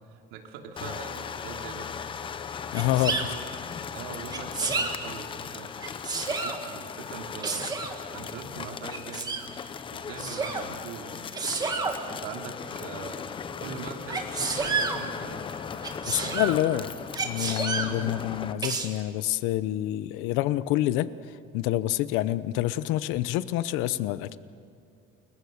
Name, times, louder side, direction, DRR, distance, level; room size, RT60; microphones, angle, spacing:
voice 1, 0.0-1.9 2.7-3.4 3.9-5.7 6.3-7.7 8.1-9.4 9.9-15.5 16.2-16.4 16.7-16.9 17.9-18.2, right 6 dB, 90° right, 3 dB, 3.1 m, -42 dB
sound 1, 0.8-18.5, left 6 dB, 25° left, 0.9 m, -38 dB
voice 2, 2.7-3.3 16.1-16.9 17.2-24.4, left 14 dB, 85° left, 15 dB, 0.9 m, -27 dB
Sneeze, 2.7-3.3 4.3-4.9 5.8-6.6 7.4-8.0 8.9-9.5 10.2-10.6 11.3-12.0 14.1-15.0 15.8-16.6 17.1-17.9 18.6-18.9, right 4 dB, 20° right, 2.0 m, -30 dB
29.5 x 22.0 x 6.6 m, 2.5 s
cardioid pair, 160°, 20 cm